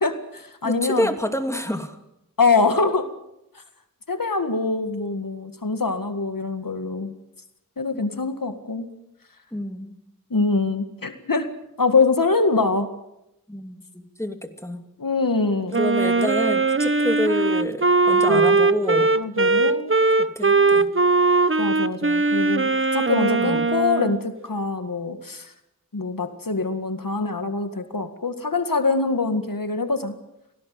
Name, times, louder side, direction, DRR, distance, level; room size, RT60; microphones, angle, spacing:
voice 1, 0.0-1.1 2.4-3.1 4.1-7.1 7.8-8.9 10.3-11.5 11.8-12.9 15.0-15.8 18.3-18.6 19.1-19.9 21.6-25.5 25.9-30.1, left 3 dB, 65° left, 8 dB, 2.0 m, -24 dB
voice 2, 0.6-2.0 8.0-8.2 9.5-9.9 13.5-14.8 15.8-19.1 20.4-20.9 23.4-23.6, left 1 dB, 10° left, 6 dB, 2.7 m, -28 dB
Wind instrument woodwind instrument, 15.7-24.2, right 3 dB, 35° right, 1.0 m, -20 dB
25.0 x 18.0 x 7.7 m, 0.85 s
wide cardioid pair, 60°, 36 cm